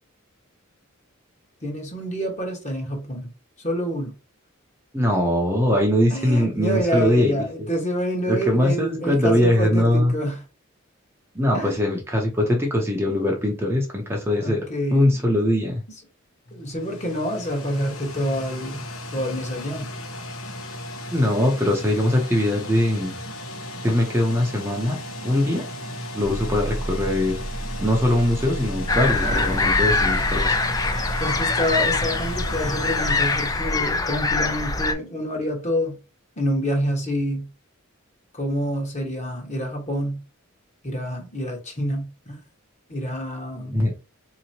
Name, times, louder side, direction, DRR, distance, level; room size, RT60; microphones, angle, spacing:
voice 1, 1.6-3.3 3.6-4.1 6.1-10.4 11.5-11.8 14.4-15.2 16.5-18.9 19.1-19.9 31.2-36.0 36.4-37.5 38.3-40.2 40.8-42.4 42.9-43.8, equal, 35° left, 1.3 m, -27 dB
voice 2, 4.9-7.7 8.3-10.1 11.3-15.8 21.1-23.1 23.8-25.0 25.2-25.7 26.1-27.4 27.8-30.6 43.6-43.9, left 1 dB, 10° right, 0.8 m, -21 dB
sound 1, 16.5-34.6, left 1 dB, 85° left, 1.0 m, -35 dB
sound 2, 26.2-31.4, right 1 dB, 35° right, 0.9 m, -32 dB
sound 3, 28.9-34.9, left 3 dB, 15° left, 0.4 m, -23 dB
4.1 x 2.9 x 2.8 m
head